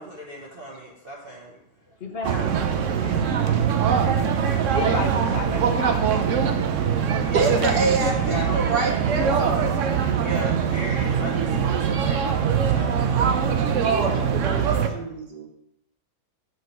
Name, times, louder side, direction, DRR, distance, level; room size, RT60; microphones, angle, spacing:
voice 1, 0.0-1.6 3.0-4.5 7.2-8.7 10.2-13.1, right 1 dB, 35° right, -4 dB, 1.4 m, -37 dB
voice 2, 1.9-2.7 4.5-6.3 6.8-7.2 7.5-8.7 14.0-15.2, left 3 dB, 40° left, 3 dB, 1.1 m, -35 dB
sound 1, 2.2-14.9, right 7 dB, 60° right, 0.9 m, -22 dB
voice 3, 7.3-9.7 13.7-14.6 14.9-15.5, right 3 dB, 75° right, 1 dB, 1.9 m, -26 dB
7.8 x 6.1 x 4.6 m, 0.75 s
omnidirectional pair, 1.8 m